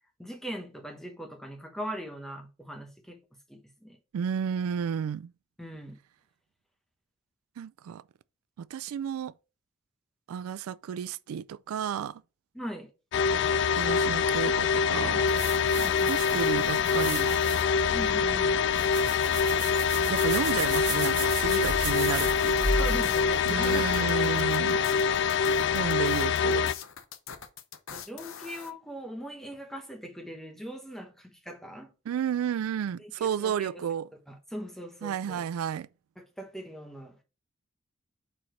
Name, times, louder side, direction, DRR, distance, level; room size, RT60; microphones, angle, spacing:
voice 1, 0.2-4.0 5.6-6.0 12.5-12.9 15.8-16.2 17.9-18.6 22.8-25.0 27.9-31.9 33.0-33.8 34.3-35.5 36.2-37.2, equal, ahead, 1.0 m, -41 dB
voice 2, 4.1-5.3 7.6-8.0 8.6-9.3 10.3-12.2 13.8-15.3 16.1-17.3 20.1-22.8 23.5-24.8 25.7-26.7 32.1-34.1 35.0-35.9, right 8 dB, 90° right, 0.3 m, -32 dB
sound 1, 13.1-26.7, left 6 dB, 55° left, 0.3 m, -25 dB
sound 2, 15.3-24.0, right 2 dB, 20° right, 2.1 m, -35 dB
sound 3, 22.4-28.7, left 7 dB, 70° left, 0.7 m, -43 dB
4.7 x 4.2 x 5.1 m
head